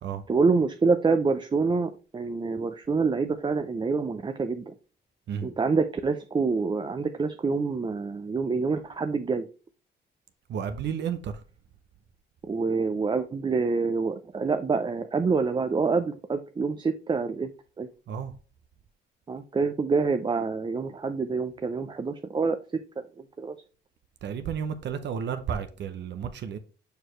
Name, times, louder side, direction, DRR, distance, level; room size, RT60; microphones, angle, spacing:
voice 1, 0.3-4.7 5.4-9.5 12.4-17.5 17.8-17.9 19.3-22.6 23.0-23.5, right 4 dB, 25° right, 0.5 m, -26 dB
voice 2, 10.5-11.4 18.1-18.4 24.2-26.6, right 7 dB, 60° right, 0.7 m, -32 dB
6.6 x 4.6 x 3.2 m
cardioid pair, 90°, 20 cm